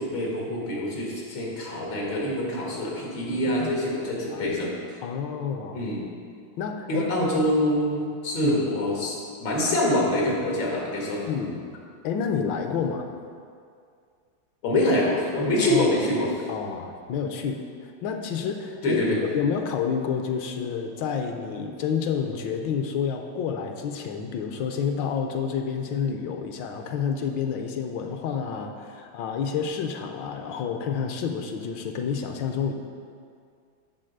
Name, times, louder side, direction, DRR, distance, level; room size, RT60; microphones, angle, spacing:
voice 1, 0.0-4.8 5.7-6.1 6.9-11.2 14.6-16.4 18.8-19.2, left 1 dB, 90° left, -3 dB, 2.3 m, -25 dB
voice 2, 5.0-5.8 6.6-7.1 8.4-8.6 11.3-11.6 12.0-13.1 15.6-15.9 16.1-19.0 19.3-32.7, left 6 dB, 75° left, 5 dB, 1.4 m, -29 dB
10.0 x 3.9 x 6.5 m, 2.3 s
omnidirectional pair, 2.1 m